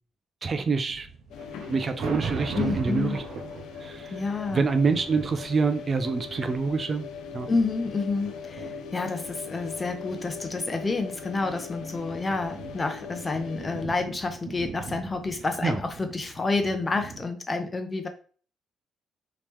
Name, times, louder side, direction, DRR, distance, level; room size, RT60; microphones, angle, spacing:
voice 1, 0.4-1.1 1.7-3.2 3.8-4.2 4.5-7.1 7.3-7.5 15.6-15.8, right 4 dB, 40° right, 9 dB, 0.4 m, -26 dB
sound 1, 0.9-17.2, right 4 dB, 70° right, 0.7 m, -40 dB
sound 2, 1.3-13.9, left 6 dB, 85° left, 0.4 m, -40 dB
voice 2, 2.5-3.2 4.1-4.6 7.5-18.1, left 3 dB, 25° left, 6 dB, 0.7 m, -29 dB
3.4 x 2.9 x 3.1 m, 0.41 s
cardioid pair, 90°, 0 cm